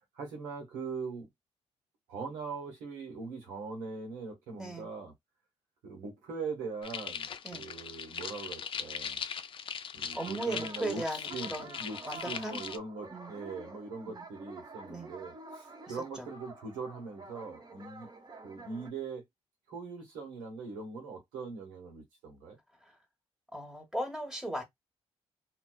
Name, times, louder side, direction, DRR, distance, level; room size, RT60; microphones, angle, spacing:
voice 1, 0.1-1.3 2.1-5.1 5.8-9.2 9.9-11.0 11.3-18.1 18.4-19.2 19.7-22.6, right 4 dB, 85° right, 1.1 m, -41 dB
voice 2, 4.5-4.9 7.4-7.6 10.1-11.8 12.1-12.6 13.1-13.3 14.0-14.2 14.9-15.1 15.9-16.3 22.8-23.0 23.5-24.6, right 1 dB, 5° right, 1.1 m, -38 dB
sound 1, 6.8-12.8, left 7 dB, 45° left, 0.4 m, -40 dB
sound 2, 10.1-18.9, right 3 dB, 35° right, 0.7 m, -49 dB
2.4 x 2.2 x 2.3 m
hypercardioid pair, 50°, 13 cm